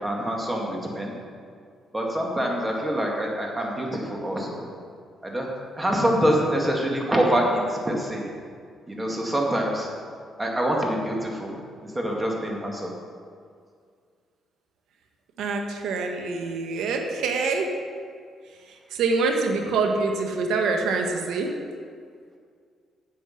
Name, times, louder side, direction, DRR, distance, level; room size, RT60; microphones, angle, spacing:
voice 1, 0.0-1.1 1.9-4.6 5.2-5.5 5.8-8.2 8.9-9.9 10.4-11.6 12.0-12.9, equal, 15° right, -1 dB, 2.2 m, -25 dB
voice 2, 15.4-17.8 18.7-21.5, right 4 dB, 80° right, 3 dB, 1.3 m, -25 dB
10.0 x 7.5 x 5.9 m, 2.1 s
cardioid pair, 90°, 0 cm